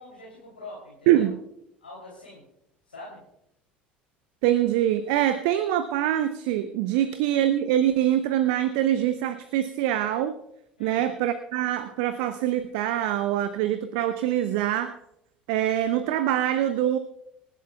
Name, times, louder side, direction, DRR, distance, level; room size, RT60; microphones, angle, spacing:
voice 1, 0.0-1.3 1.8-2.4 2.9-3.2 6.9-7.1 10.8-11.1, left 2 dB, 80° left, -3 dB, 3.1 m, -44 dB
voice 2, 1.1-1.4 4.4-10.3 10.8-15.0 15.5-17.0, right 12 dB, 60° right, 10 dB, 0.7 m, -24 dB
26.5 x 11.0 x 2.3 m, 0.78 s
figure-of-eight pair, 65°, 5 cm